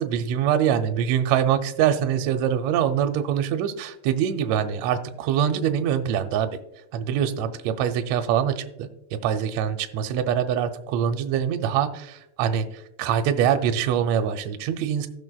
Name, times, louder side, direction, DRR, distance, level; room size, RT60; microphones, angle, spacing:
voice 1, 0.0-6.5 6.9-12.7 13.0-15.1, right 9 dB, 75° right, 8 dB, 1.7 m, -24 dB
16.5 x 6.2 x 2.3 m, 0.88 s
omnidirectional pair, 3.5 m